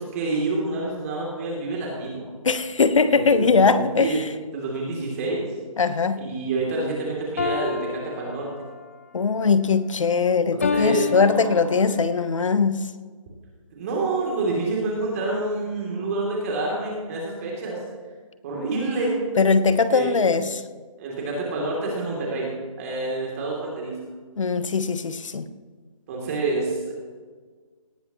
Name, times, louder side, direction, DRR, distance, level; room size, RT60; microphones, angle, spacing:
voice 1, 0.0-2.2 3.0-4.2 4.5-5.4 6.2-8.5 10.5-11.6 13.7-17.8 18.4-19.1 19.9-20.3 21.0-22.5 22.8-23.9 26.1-26.9, right 2 dB, 25° right, -3 dB, 3.0 m, -27 dB
voice 2, 2.4-4.3 5.8-6.2 9.1-12.8 19.4-20.6 24.4-25.5, left 4 dB, 60° left, 12 dB, 1.1 m, -21 dB
sound 1, 7.4-8.9 10.6-12.1, left 6 dB, 25° left, 0.3 m, -29 dB
18.5 x 16.5 x 3.1 m, 1.5 s
figure-of-eight pair, 160°, 18 cm